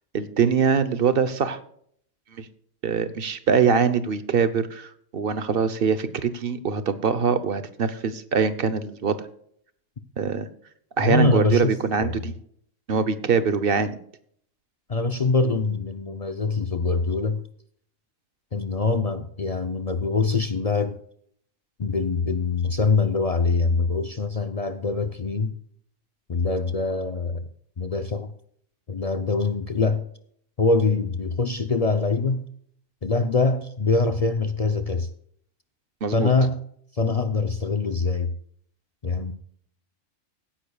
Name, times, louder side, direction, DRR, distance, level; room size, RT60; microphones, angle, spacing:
voice 1, 0.1-1.6 2.4-2.5 2.8-9.2 10.2-10.5 11.0-12.3 12.9-14.0 36.0-36.3, right 6 dB, 50° right, 1.0 m, -23 dB
voice 2, 11.0-12.2 14.9-17.4 18.5-21.0 21.8-25.6 26.3-27.5 27.8-28.3 28.9-30.1 30.6-32.4 33.0-35.1 36.1-36.6 36.9-38.3 39.0-39.3, left 3 dB, 40° left, 0.6 m, -24 dB
16.5 x 10.0 x 2.3 m
omnidirectional pair, 1.3 m